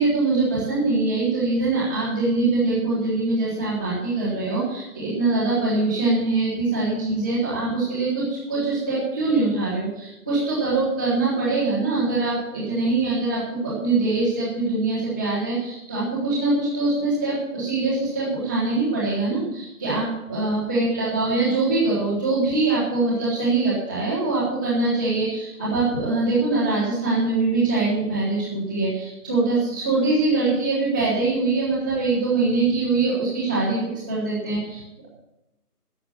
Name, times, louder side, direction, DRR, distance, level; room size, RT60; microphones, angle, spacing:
voice 1, 0.0-33.8 34.1-35.1, right 3 dB, 5° right, -15 dB, 1.4 m, -23 dB
14.0 x 9.4 x 7.3 m, 0.92 s
figure-of-eight pair, 165°, 46 cm